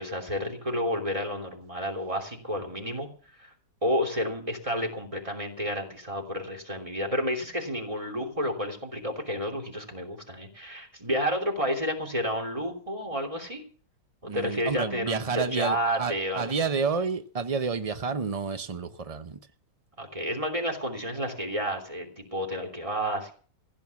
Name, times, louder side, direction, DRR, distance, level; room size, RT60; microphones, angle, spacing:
voice 1, 0.0-3.1 3.4-3.5 3.8-13.6 14.2-16.5 20.0-23.3, equal, 15° right, 3.1 m, -30 dB
voice 2, 14.3-19.4, right 5 dB, 70° right, 0.3 m, -30 dB
15.5 x 8.9 x 7.1 m
omnidirectional pair, 1.9 m